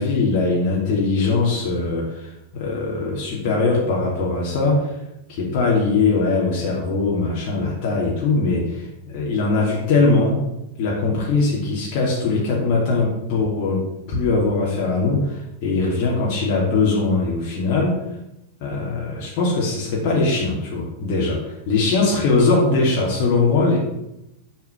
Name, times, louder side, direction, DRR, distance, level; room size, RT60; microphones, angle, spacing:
voice 1, 0.0-4.9 5.3-10.4 10.8-18.0 18.6-23.8, left 3 dB, 45° left, -4 dB, 2.8 m, -21 dB
7.4 x 7.2 x 7.1 m, 0.88 s
figure-of-eight pair, 90°, 0 cm